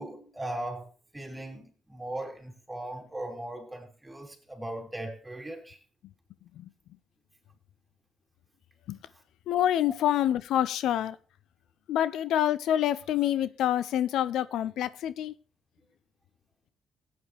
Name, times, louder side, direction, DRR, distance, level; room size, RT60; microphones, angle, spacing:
voice 1, 0.0-5.8, right 1 dB, 10° right, 3.4 m, -38 dB
voice 2, 9.5-11.2 11.9-15.3, left 11 dB, 80° left, 0.5 m, -27 dB
16.0 x 9.1 x 3.3 m
cardioid pair, 90°, 0 cm